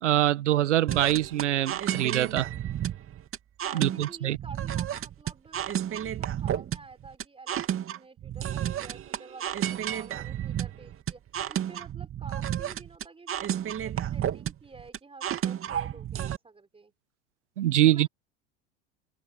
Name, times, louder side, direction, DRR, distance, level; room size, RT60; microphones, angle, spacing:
voice 1, 0.0-2.5 3.7-4.4 17.6-18.1, right 13 dB, 85° right, 1.3 m, -24 dB
sound 1, 0.9-16.4, right 10 dB, 40° right, 2.5 m, -32 dB
voice 2, 3.6-11.2 11.5-16.9 17.8-18.1, right 4 dB, 15° right, 4.2 m, -50 dB
open air
hypercardioid pair, 80°, 35 cm